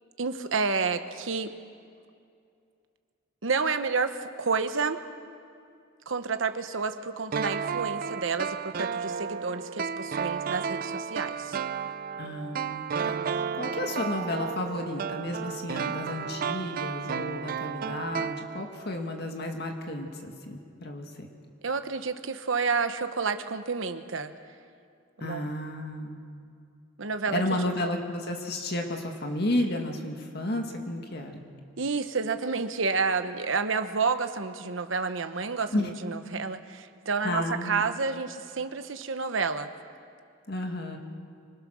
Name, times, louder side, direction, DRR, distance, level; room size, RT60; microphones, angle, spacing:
voice 1, 0.2-1.5 3.4-5.0 6.1-11.6 21.6-24.3 25.2-25.5 27.0-27.7 31.8-39.7, right 4 dB, 80° right, 9 dB, 1.1 m, -30 dB
sound 1, 7.3-19.0 19.2-19.3, right 6 dB, 45° right, 0.4 m, -33 dB
voice 2, 12.2-21.3 25.2-26.4 27.3-31.4 35.7-35.9 37.2-37.9 40.5-41.0, left 1 dB, 55° left, 3 dB, 2.0 m, -32 dB
25.0 x 21.0 x 6.4 m, 2.4 s
head